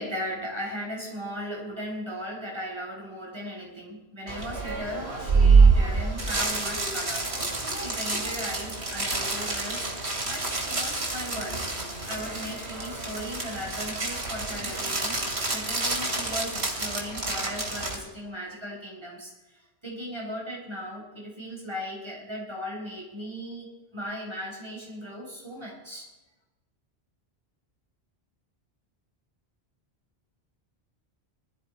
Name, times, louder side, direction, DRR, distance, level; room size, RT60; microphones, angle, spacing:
voice 1, 0.0-7.3 7.7-9.9 10.3-11.6 12.1-15.2 15.5-19.3 19.8-23.7 23.9-26.1, equal, 25° right, -3 dB, 4.5 m, -37 dB
sound 1, 4.3-18.0, right 4 dB, 85° right, 2.9 m, -26 dB
20.5 x 13.0 x 4.5 m, 1.1 s
omnidirectional pair, 1.1 m